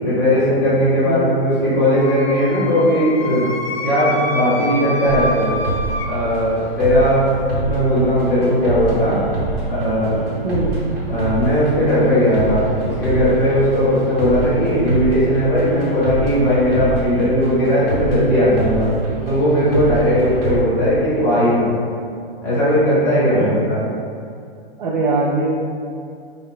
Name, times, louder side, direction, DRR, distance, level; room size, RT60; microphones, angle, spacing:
voice 1, 0.0-3.5 3.8-5.5 6.0-7.3 7.6-9.2 9.7-10.2 11.1-18.9 19.2-21.7 22.4-23.8, equal, 5° left, -12 dB, 0.5 m, -17 dB
voice 2, 1.1-1.4 10.4-10.8 23.2-23.6 24.8-25.5, right 2 dB, 50° right, -4 dB, 0.4 m, -21 dB
Wind instrument woodwind instrument, 1.9-6.1, left 1 dB, 80° left, 0.5 m, -27 dB
sound 1, 5.1-20.6, right 3 dB, 70° right, 1.1 m, -26 dB
2.4 x 2.0 x 3.6 m, 2.4 s
hypercardioid pair, 160°, 30 cm